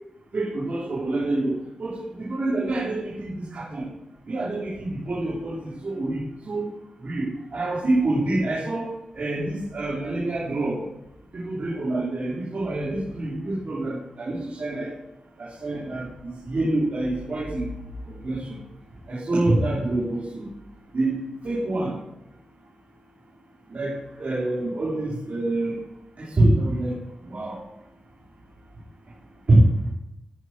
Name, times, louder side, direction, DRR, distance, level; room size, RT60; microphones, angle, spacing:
voice 1, 0.3-3.9 4.3-6.2 6.4-6.7 7.0-10.8 11.3-14.9 15.4-17.7 18.1-18.6 19.1-20.4 20.9-21.2 21.4-21.9 23.7-25.8 26.2-26.9 27.2-27.6 29.5-29.7, right 2 dB, 65° right, -7 dB, 4.6 m, -26 dB
12.5 x 9.1 x 4.8 m, 0.84 s
cardioid pair, 45°, 3 cm